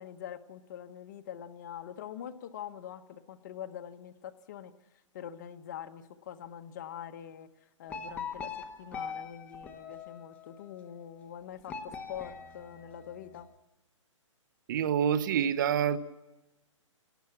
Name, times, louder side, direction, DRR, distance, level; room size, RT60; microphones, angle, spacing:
voice 1, 0.0-4.7 5.1-7.5 7.8-8.5 8.8-13.5, left 9 dB, 35° left, 7 dB, 1.3 m, -44 dB
sound 1, 7.9-10.6 11.7-13.4, left 5 dB, 10° left, 1.0 m, -42 dB
voice 2, 14.7-16.0, right 8 dB, 40° right, 13 dB, 1.2 m, -27 dB
28.5 x 19.0 x 7.2 m, 1.1 s
hypercardioid pair, 165°, 16 cm